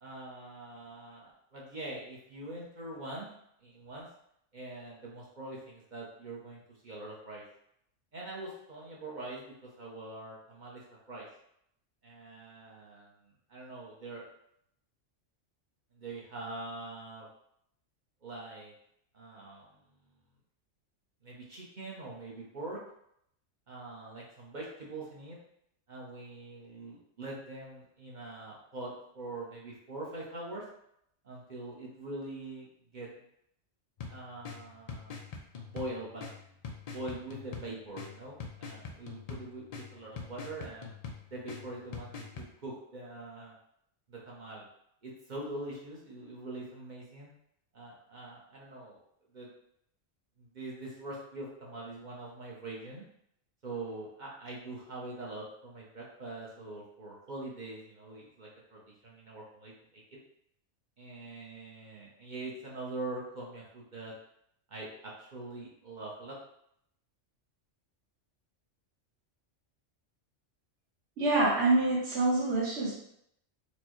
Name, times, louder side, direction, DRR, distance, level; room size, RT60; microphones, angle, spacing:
voice 1, 0.0-3.3 3.6-4.1 4.5-7.4 8.1-10.8 11.1-11.3 12.0-14.2 15.9-17.3 18.2-18.7 19.1-19.8 21.2-22.8 23.7-25.4 25.9-30.6 31.2-33.1 34.1-35.2 35.6-36.2 36.8-41.0 41.3-43.5 44.1-44.7 45.0-47.3 47.7-49.0 49.3-49.5 50.4-53.1 53.6-60.0 61.0-64.1 64.7-64.9 65.2-66.3, right 2 dB, 40° right, -4 dB, 0.9 m, -43 dB
sound 1, 34.0-42.5, left 5 dB, 90° left, 0.3 m, -45 dB
voice 2, 71.2-72.9, right 2 dB, 60° right, -8 dB, 1.5 m, -26 dB
4.4 x 2.2 x 3.0 m, 0.73 s
omnidirectional pair, 1.3 m